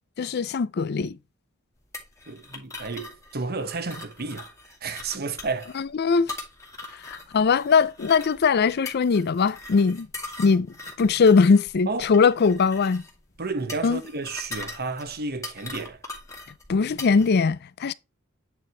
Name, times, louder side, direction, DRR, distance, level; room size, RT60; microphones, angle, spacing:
voice 1, 0.2-1.2 5.8-6.3 7.1-10.1 10.4-10.7 11.0-13.0 13.8-14.0 16.7-17.9, left 5 dB, 50° left, 0.4 m, -21 dB
sound 1, 1.9-17.3, left 2 dB, 15° left, 2.0 m, -41 dB
voice 2, 2.3-4.5 4.8-5.7 11.9-12.1 13.4-16.0, right 3 dB, 50° right, 1.1 m, -32 dB
9.2 x 4.2 x 3.3 m
head